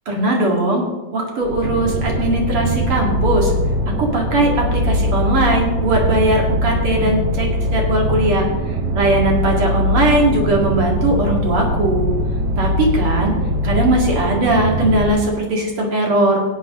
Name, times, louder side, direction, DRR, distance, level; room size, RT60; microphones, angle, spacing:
voice 1, 0.1-0.8 1.1-3.5 3.9-12.2 12.6-13.4 13.6-16.4, right 2 dB, 80° right, -1 dB, 3.3 m, -19 dB
sound 1, 1.4-15.1, equal, 60° right, 1.8 m, -21 dB
17.5 x 8.4 x 3.7 m, 1.2 s
omnidirectional pair, 2.3 m